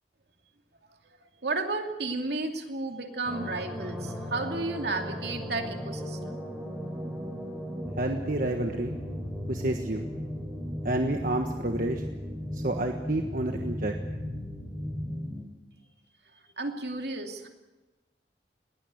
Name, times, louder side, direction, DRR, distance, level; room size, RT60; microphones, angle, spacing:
voice 1, 1.4-6.4 16.4-17.5, right 3 dB, 65° right, 3 dB, 2.6 m, -33 dB
sound 1, 3.2-15.4, equal, 5° right, 3.7 m, -36 dB
voice 2, 8.0-9.0 9.5-10.1 10.8-12.0 12.5-13.9, right 1 dB, 50° right, 3 dB, 1.5 m, -29 dB
20.5 x 19.0 x 8.2 m, 1.1 s
head